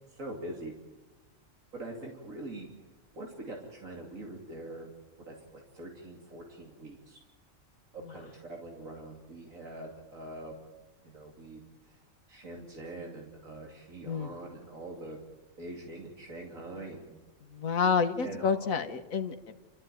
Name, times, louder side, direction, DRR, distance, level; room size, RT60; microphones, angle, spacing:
voice 1, 0.1-0.7 1.7-2.7 3.1-4.9 5.3-7.2 7.9-10.5 11.0-12.0 12.3-15.2 15.6-17.1 18.2-18.7, right 2 dB, 80° right, -1 dB, 3.3 m, -43 dB
voice 2, 17.5-19.5, left 6 dB, 90° left, 7 dB, 1.7 m, -29 dB
29.0 x 13.5 x 9.3 m, 1.2 s
omnidirectional pair, 1.4 m